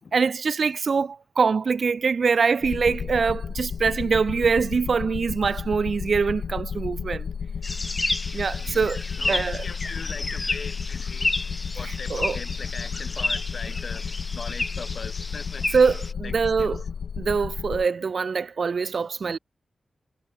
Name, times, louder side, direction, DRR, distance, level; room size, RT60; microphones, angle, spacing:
voice 1, 0.1-7.3 8.3-9.0 9.3-9.7 11.8-12.4 15.7-16.8 17.2-19.4, right 5 dB, 50° right, 1.1 m, -24 dB
sound 1, 2.6-17.9, left 6 dB, 70° left, 0.5 m, -33 dB
sound 2, 7.6-16.1, left 2 dB, 20° left, 1.7 m, -31 dB
voice 2, 9.2-11.4 11.7-15.8 16.2-16.7, left 5 dB, 50° left, 2.1 m, -40 dB
wide cardioid pair, 175°, 0 cm